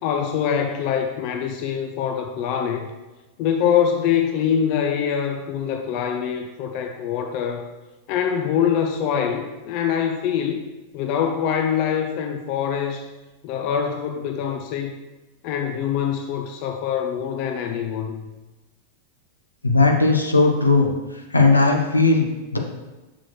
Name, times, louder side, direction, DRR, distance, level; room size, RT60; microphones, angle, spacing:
voice 1, 0.0-2.9 3.4-7.7 8.1-10.6 10.9-13.1 13.4-14.9 15.4-18.3, left 8 dB, 45° left, 4 dB, 0.5 m, -24 dB
voice 2, 19.6-20.9 21.3-22.6, left 3 dB, 80° left, 2 dB, 0.9 m, -17 dB
6.4 x 6.1 x 3.1 m, 1.1 s
figure-of-eight pair, 90°, 0 cm